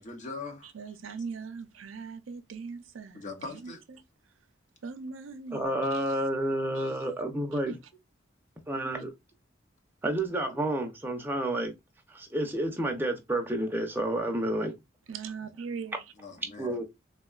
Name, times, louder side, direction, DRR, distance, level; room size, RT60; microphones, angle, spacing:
voice 1, 0.0-0.7 3.1-3.8 10.5-10.6 16.2-16.8, left 3 dB, 40° left, 0.7 m, -41 dB
voice 2, 0.7-4.0 4.8-6.0 6.7-6.9 15.1-16.0, right 5 dB, 85° right, 0.5 m, -40 dB
voice 3, 5.5-7.8 8.7-9.1 10.0-11.7 12.1-14.7 16.6-16.8, right 1 dB, 10° right, 0.6 m, -30 dB
3.6 x 2.2 x 2.3 m
head